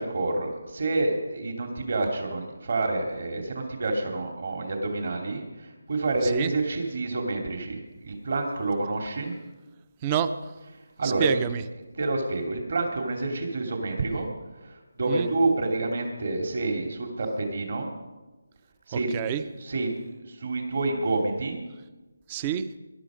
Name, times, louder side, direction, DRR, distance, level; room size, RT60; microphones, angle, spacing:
voice 1, 0.0-9.3 11.0-11.4 12.0-14.3 14.6-17.9 18.9-19.1 19.6-19.9 20.2-21.6, right 2 dB, 55° right, 2 dB, 2.9 m, -28 dB
voice 2, 10.0-10.3 11.0-11.6 15.1-15.3 18.9-19.4 22.3-22.7, right 8 dB, 25° right, 13 dB, 0.7 m, -28 dB
21.0 x 12.0 x 5.2 m, 1.2 s
figure-of-eight pair, 160°, 0 cm